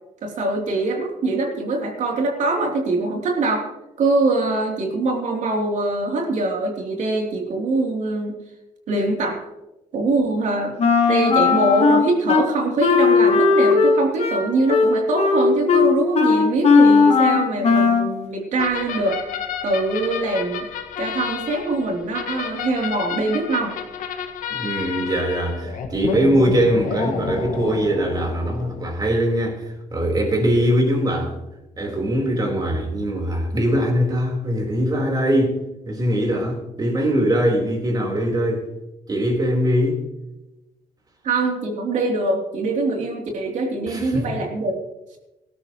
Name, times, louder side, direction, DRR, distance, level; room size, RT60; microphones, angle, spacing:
voice 1, 0.2-3.7 4.0-8.3 8.9-9.3 9.9-10.7 11.1-19.2 19.6-20.7 21.0-23.7 41.2-44.8, right 2 dB, 60° right, 3.2 m, -23 dB
Wind instrument woodwind instrument, 10.8-12.4 12.8-18.1, left 4 dB, 50° left, 1.7 m, -17 dB
sound 1, 18.6-28.9, left 7 dB, 75° left, 1.7 m, -31 dB
voice 2, 24.5-31.4 31.8-35.5 35.9-38.6 39.1-40.0 43.9-44.3, equal, 30° right, 4.0 m, -21 dB
18.0 x 13.0 x 3.1 m
cardioid pair, 100°, 14 cm